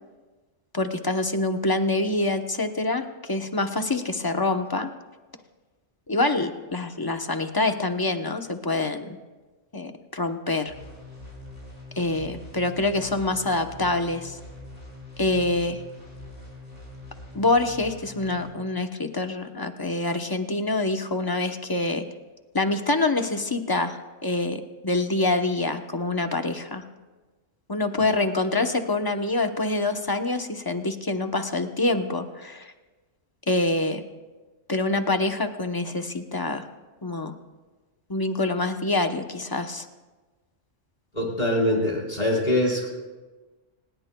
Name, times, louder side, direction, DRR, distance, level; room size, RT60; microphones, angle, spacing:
voice 1, 0.7-4.9 6.1-9.2 9.7-10.7 12.0-14.4 15.2-15.8 17.3-22.0 22.5-24.0 24.2-26.8 27.7-32.7 33.5-34.0 34.7-36.6 37.0-37.3 38.1-39.9, left 2 dB, 20° left, 6 dB, 0.8 m, -26 dB
sound 1, 10.7-18.5, left 2 dB, 85° left, 5.8 m, -43 dB
voice 2, 41.1-42.9, left 1 dB, 35° left, -3 dB, 4.5 m, -23 dB
27.0 x 19.5 x 2.3 m, 1.2 s
omnidirectional pair, 1.3 m